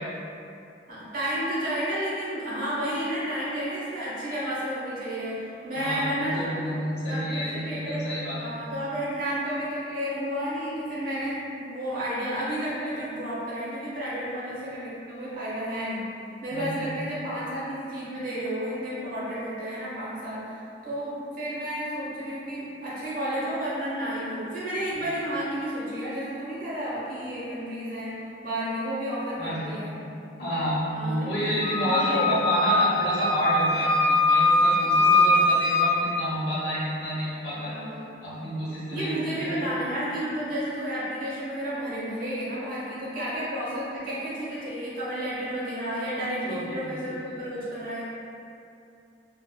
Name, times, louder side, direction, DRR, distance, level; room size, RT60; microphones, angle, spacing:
voice 1, 0.9-6.6 7.1-16.1 16.4-30.0 30.9-31.5 31.8-32.3 37.7-38.3 38.9-48.0, equal, 50° right, -9 dB, 1.0 m, -31 dB
voice 2, 5.7-8.4 16.5-16.9 29.4-29.7 30.4-37.7 38.2-39.6 46.4-46.9, equal, 65° left, -8 dB, 1.1 m, -29 dB
Wind instrument woodwind instrument, 31.6-35.9, left 2 dB, 30° left, 0.4 m, -22 dB
4.4 x 2.2 x 2.2 m, 2.6 s
head